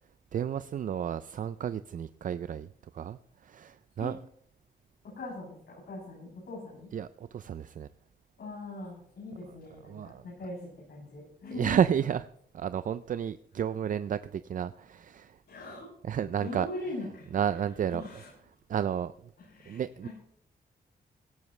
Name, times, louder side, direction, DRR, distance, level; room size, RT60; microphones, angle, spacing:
voice 1, 0.3-2.7 2.9-4.2 6.9-7.9 9.8-10.2 11.5-12.3 12.5-15.4 16.0-16.7 17.3-18.0 18.7-19.1 19.7-20.1, right 8 dB, 50° right, 13 dB, 0.4 m, -31 dB
voice 2, 5.0-6.9 8.4-11.8 15.5-15.9 16.4-17.3 17.9-18.3 19.5-20.1, left 2 dB, 80° left, -6 dB, 7.8 m, -41 dB
17.0 x 16.5 x 3.3 m, 0.67 s
wide cardioid pair, 175°, 17 cm